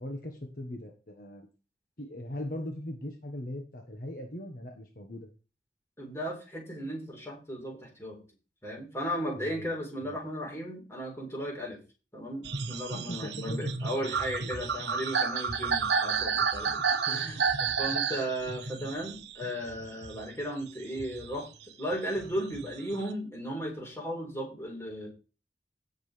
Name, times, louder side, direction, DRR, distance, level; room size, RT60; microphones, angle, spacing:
voice 1, 0.0-1.5 2.0-5.3 9.3-9.7 10.0-10.2 12.9-13.7 16.7-17.3, left 1 dB, 50° left, 3 dB, 1.4 m, -40 dB
voice 2, 6.0-8.2 8.6-11.8 12.1-16.8 17.1-25.1, equal, 15° left, -1 dB, 4.2 m, -36 dB
sound 1, 12.4-20.4 20.9-23.1, right 5 dB, 75° right, 1.1 m, -31 dB
16.5 x 6.6 x 3.4 m, 0.33 s
head